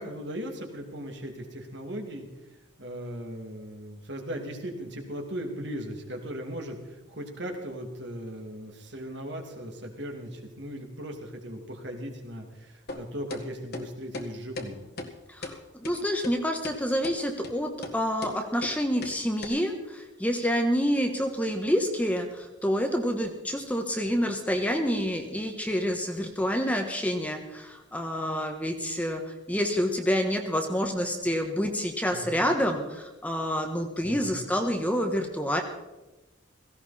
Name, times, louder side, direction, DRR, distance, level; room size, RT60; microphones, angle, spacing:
voice 1, 0.0-2.3 2.8-14.8 32.1-32.5 34.0-34.4, equal, 60° right, 2 dB, 2.6 m, -38 dB
sound 1, 12.9-13.0 13.3-13.4 13.7-13.9 14.1-14.3 14.6-14.7 15.0-15.1 15.4-15.6 15.8-16.0 16.2-16.3 16.6-16.8 17.0-17.2 17.4-17.5 17.8-18.0 18.2-18.3 18.6-18.7 19.0-19.1 19.4-19.5, left 2 dB, 50° left, 1.8 m, -36 dB
voice 2, 15.3-35.6, equal, 5° left, 4 dB, 1.3 m, -28 dB
17.0 x 16.0 x 4.3 m, 1.1 s
head